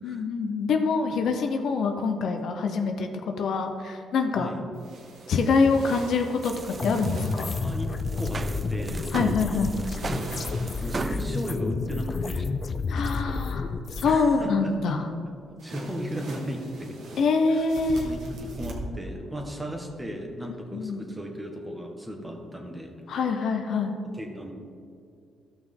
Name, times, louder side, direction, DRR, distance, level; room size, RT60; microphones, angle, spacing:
voice 1, 0.0-3.1 3.4-4.5 5.3-7.6 9.1-9.7 12.9-15.0 17.2-18.1 20.7-21.0 23.1-23.9, left 4 dB, 70° left, 5 dB, 0.8 m, -25 dB
sound 1, 4.7-7.8 9.8-11.3 15.6-18.7, right 2 dB, 75° right, 1.7 m, -42 dB
sound 2, 6.4-11.5, right 4 dB, 30° right, 0.4 m, -37 dB
sound 3, 6.8-14.2, left 4 dB, 40° left, 0.5 m, -30 dB
voice 2, 7.6-7.9 8.2-8.4 8.7-9.1 9.4-9.6 10.8-12.5 14.0-15.0 15.6-16.9 17.5-17.6 17.9-23.2 24.1-24.5, equal, 15° right, 1 dB, 1.7 m, -36 dB
13.5 x 6.1 x 3.8 m, 2.5 s
cardioid pair, 90°, 0 cm